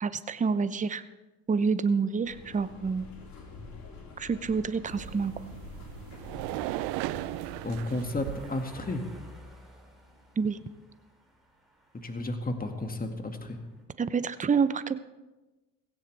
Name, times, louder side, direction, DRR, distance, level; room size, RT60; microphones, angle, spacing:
voice 1, 0.0-1.0 1.5-3.1 4.2-5.3 10.4-10.6 14.0-15.0, right 5 dB, 20° right, 13 dB, 0.7 m, -28 dB
sound 1, 2.2-8.2, left 4 dB, 60° left, 3.3 m, -47 dB
sound 2, 2.5-13.8, equal, ahead, 4.0 m, -55 dB
sound 3, 4.9-8.6, right 16 dB, 75° right, 0.6 m, -37 dB
voice 2, 7.6-9.0 12.0-13.6, left 2 dB, 20° left, 5 dB, 2.1 m, -32 dB
16.5 x 16.5 x 3.4 m, 1.1 s
hypercardioid pair, 65°, 40 cm